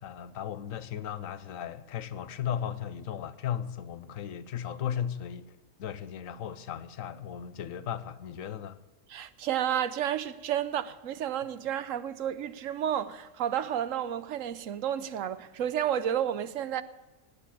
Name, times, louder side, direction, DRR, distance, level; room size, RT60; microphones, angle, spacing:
voice 1, 0.0-8.8, left 9 dB, 80° left, 1.2 m, -36 dB
voice 2, 9.1-16.8, right 10 dB, 75° right, 1.1 m, -31 dB
19.0 x 8.4 x 8.4 m
omnidirectional pair, 1.4 m